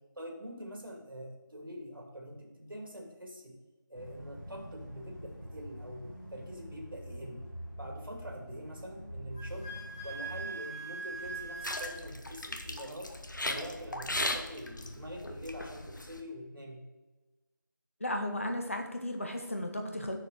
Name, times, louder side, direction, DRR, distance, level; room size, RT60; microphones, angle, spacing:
voice 1, 0.2-3.5 3.9-7.4 7.8-9.7 10.0-13.1 13.4-16.8, equal, 85° right, 0 dB, 2.5 m, -44 dB
sound 1, 3.9-10.5, equal, 5° right, 1.4 m, -45 dB
Wind instrument woodwind instrument, 9.3-11.9, right 3 dB, 10° left, 1.0 m, -41 dB
sound 2, 11.1-16.2, left 1 dB, 65° left, 1.1 m, -38 dB
voice 2, 18.0-20.2, left 1 dB, 40° left, 3 dB, 1.0 m, -34 dB
6.9 x 6.6 x 4.7 m, 1.2 s
figure-of-eight pair, 175°, 11 cm